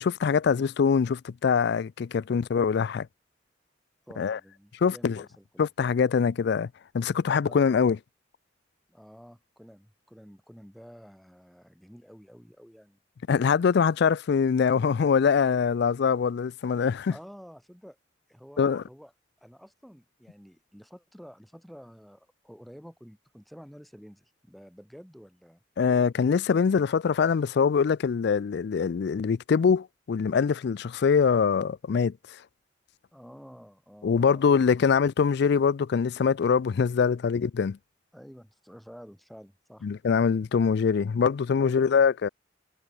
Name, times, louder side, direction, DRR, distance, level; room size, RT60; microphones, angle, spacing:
voice 1, 0.0-3.1 4.2-4.4 4.8-5.2 5.6-6.7 6.9-8.0 13.3-17.1 18.6-18.8 25.8-32.1 34.0-37.8 39.8-42.3, left 6 dB, 60° left, 0.4 m, -23 dB
voice 2, 4.1-5.7 7.5-7.6 8.9-13.0 17.1-18.0 18.3-19.1 19.4-25.6 33.1-34.7 38.1-39.9, equal, ahead, 5.8 m, -50 dB
head